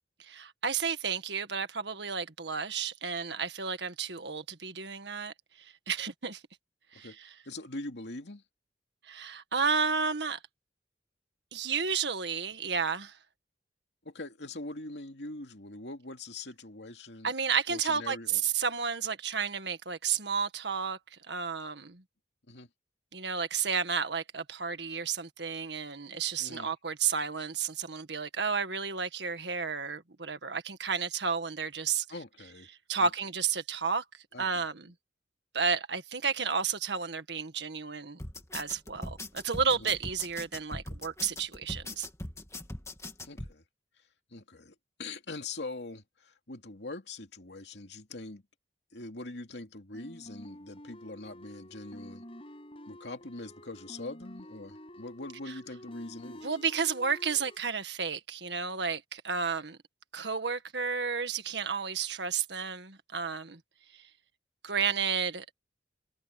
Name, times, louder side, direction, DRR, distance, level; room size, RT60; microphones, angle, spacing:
voice 1, 0.2-6.4 6.9-7.3 9.1-10.4 11.5-13.1 17.2-21.0 21.3-22.0 23.1-32.1 32.9-34.0 34.4-34.9 35.5-38.2 38.5-42.1 56.4-59.8 60.1-63.6 63.9-64.0 64.6-65.5, right 6 dB, 70° right, 1.8 m, -32 dB
voice 2, 7.5-8.4 14.0-17.3 17.7-18.4 22.5-22.7 26.4-26.7 32.1-32.7 33.0-33.1 34.3-34.7 39.8-39.9 43.2-43.6 44.3-48.4 48.9-52.2 52.9-56.5, left 2 dB, 70° left, 2.7 m, -43 dB
sound 1, 38.2-43.5, left 2 dB, 15° left, 1.9 m, -41 dB
sound 2, 49.9-57.6, equal, 30° left, 8.0 m, -49 dB
head